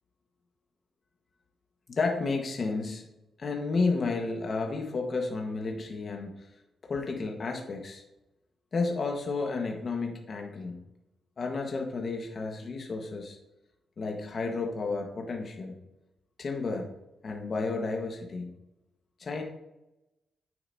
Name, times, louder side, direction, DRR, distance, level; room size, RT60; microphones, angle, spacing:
voice 1, 1.9-3.0 3.4-6.5 6.8-8.0 8.7-10.8 11.4-13.4 14.0-15.8 16.4-16.9 17.2-18.5 19.2-19.4, left 3 dB, 45° left, 2 dB, 1.3 m, -32 dB
9.0 x 7.9 x 2.7 m, 0.91 s
cardioid pair, 105°, 0 cm